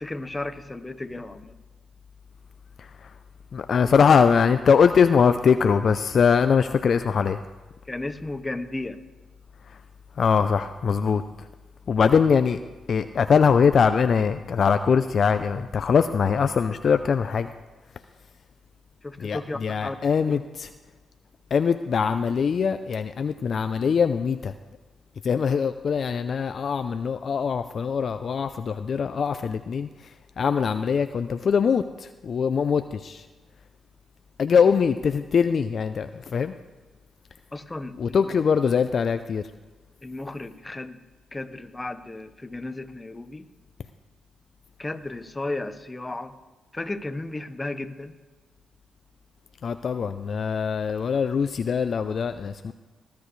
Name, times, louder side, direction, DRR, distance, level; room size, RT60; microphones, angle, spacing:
voice 1, 0.0-1.5 7.9-9.0 19.0-20.0 20.3-20.4 37.5-38.3 40.0-41.0 41.3-43.5 44.8-46.3 46.7-48.2, left 2 dB, 20° left, 9 dB, 1.1 m, -34 dB
voice 2, 3.5-7.4 10.2-11.2 11.9-12.6 12.9-17.5 19.2-20.7 21.5-24.5 25.2-29.9 30.4-33.2 34.4-36.5 38.0-39.4 49.6-52.7, left 6 dB, 60° left, 10 dB, 0.5 m, -22 dB
19.5 x 10.5 x 3.2 m, 1.3 s
supercardioid pair, 55°, 0 cm